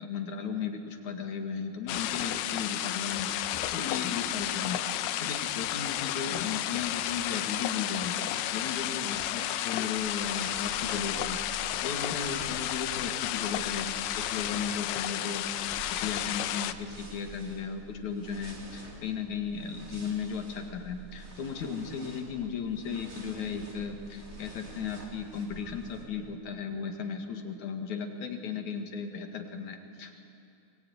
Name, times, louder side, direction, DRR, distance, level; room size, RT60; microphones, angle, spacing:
voice 1, 0.0-8.2 8.5-30.1, left 6 dB, 65° left, 5 dB, 3.2 m, -36 dB
sound 1, 1.9-16.7, left 13 dB, 80° left, 2.4 m, -32 dB
sound 2, 9.9-26.0, right 2 dB, 25° right, 3.5 m, -48 dB
24.0 x 22.0 x 9.5 m, 2.6 s
omnidirectional pair, 3.9 m